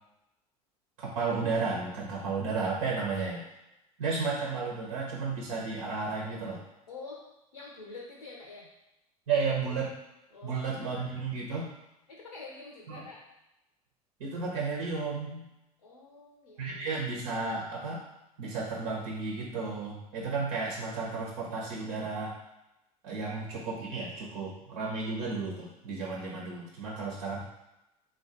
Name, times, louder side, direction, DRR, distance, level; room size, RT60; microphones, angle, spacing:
voice 1, 1.0-3.4 4.0-6.6 9.3-9.9 10.4-11.7 12.9-13.0 14.2-15.4 16.6-18.0 18.4-22.3 23.0-27.4, right 4 dB, 65° right, -3 dB, 1.2 m, -33 dB
voice 2, 6.9-7.2 7.5-8.7 9.4-9.7 10.3-11.0 12.1-13.2 15.8-16.9, left 3 dB, 80° left, -2 dB, 0.9 m, -47 dB
3.8 x 3.0 x 4.3 m, 0.91 s
figure-of-eight pair, 75°, 20 cm